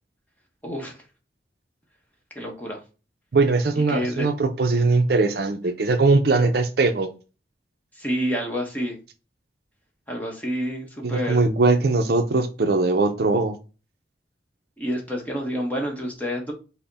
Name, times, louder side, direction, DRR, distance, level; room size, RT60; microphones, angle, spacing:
voice 1, 0.6-1.0 2.3-2.8 3.7-4.3 7.9-9.0 10.1-11.4 14.8-16.5, equal, 10° left, 1.0 m, -28 dB
voice 2, 3.3-7.1 11.0-13.6, right 3 dB, 55° right, 0.5 m, -20 dB
5.6 x 2.1 x 3.9 m
head